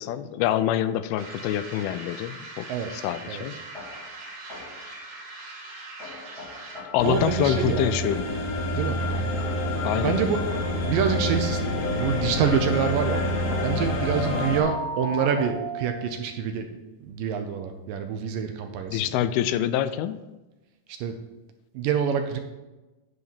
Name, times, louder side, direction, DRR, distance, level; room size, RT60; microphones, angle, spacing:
voice 1, 0.0-3.6 6.9-8.3 8.7-9.3 9.6-10.3 18.9-20.2, left 11 dB, 90° left, 13 dB, 2.5 m, -26 dB
sound 1, 1.2-7.0, right 2 dB, 55° right, 3.1 m, -41 dB
voice 2, 2.7-3.4 7.0-7.9 8.8-9.0 10.0-10.4 10.9-13.2 13.6-16.7 17.0-19.1 20.9-21.2 21.7-22.4, right 7 dB, 75° right, 6 dB, 2.2 m, -27 dB
sound 2, 3.7-5.0 6.0-8.0 9.0-11.0 12.0-16.3, equal, 25° left, 1.6 m, -39 dB
sound 3, 7.0-14.6, left 1 dB, 65° left, 1.6 m, -27 dB
9.9 x 3.9 x 7.0 m, 1.1 s
omnidirectional pair, 4.3 m